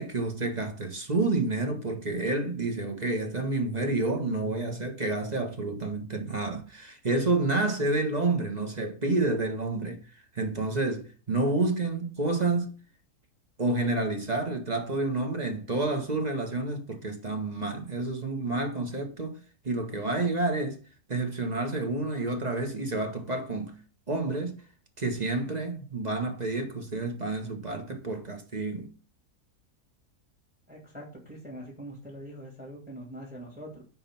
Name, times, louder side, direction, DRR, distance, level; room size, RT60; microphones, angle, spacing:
voice 1, 0.0-10.0 10.3-12.7 13.6-19.4 19.6-20.8 21.1-23.7 24.1-24.5 25.0-28.9, right 2 dB, 25° right, 1.5 m, -29 dB
voice 2, 30.7-33.8, right 1 dB, 5° right, 2.8 m, -43 dB
10.0 x 4.2 x 5.7 m
omnidirectional pair, 1.7 m